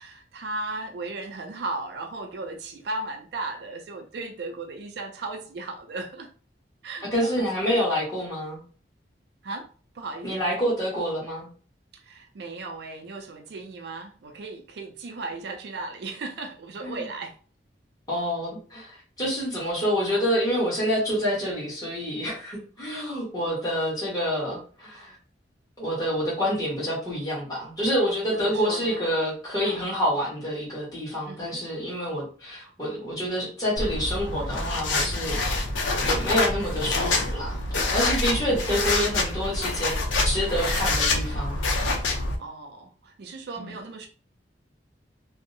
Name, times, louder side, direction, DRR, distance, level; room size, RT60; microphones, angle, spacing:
voice 1, 0.0-6.3 6.8-7.5 9.4-9.7 9.9-10.4 11.9-17.4 20.0-20.3 28.3-29.1 29.6-29.9 31.3-31.6 38.5-38.8 39.4-39.8 42.4-44.1, right 3 dB, 60° right, 4 dB, 0.4 m, -36 dB
voice 2, 7.1-8.6 10.2-11.5 16.8-17.0 18.1-25.1 25.8-35.4 36.0-42.0 43.6-43.8, equal, 20° left, -6 dB, 1.1 m, -27 dB
sound 1, 33.8-42.4, left 2 dB, 90° left, 0.5 m, -26 dB
2.6 x 2.0 x 2.5 m, 0.40 s
head